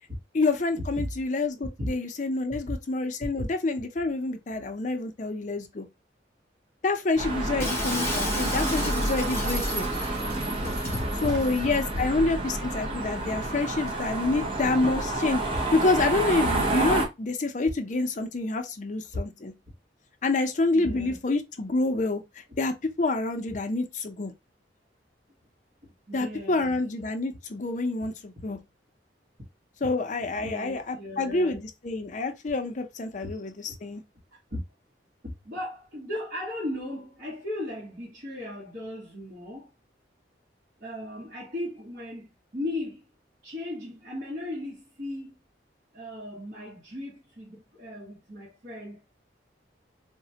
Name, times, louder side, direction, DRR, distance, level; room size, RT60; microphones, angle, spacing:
voice 1, 0.3-5.9 6.8-9.9 11.2-15.4 15.7-19.5 20.2-22.2 22.6-24.3 26.1-28.6 29.8-33.5 33.8-34.0, left 3 dB, 45° left, 0.5 m, -27 dB
sound 1, 7.2-17.1, right 2 dB, 30° right, 0.7 m, -29 dB
Shatter, 7.6-11.0, left 3 dB, 15° left, 0.8 m, -35 dB
voice 2, 10.6-11.7 15.5-15.6 16.4-16.6 20.7-21.2 26.1-26.8 30.4-31.6 33.2-33.3 34.3-34.6 35.2-39.7 40.8-43.0 43.4-45.4 45.9-49.0, left 1 dB, 50° right, 1.2 m, -36 dB
4.0 x 2.1 x 2.8 m
head